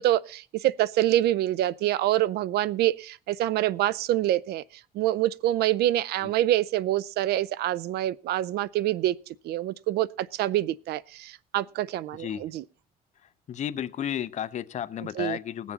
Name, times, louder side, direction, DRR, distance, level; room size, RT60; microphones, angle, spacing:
voice 1, 0.0-4.6 4.9-9.2 9.4-12.6 15.2-15.4, right 14 dB, 70° right, 0.5 m, -26 dB
voice 2, 13.5-15.7, left 10 dB, 45° left, 0.7 m, -33 dB
19.5 x 7.2 x 4.1 m
cardioid pair, 110°, 17 cm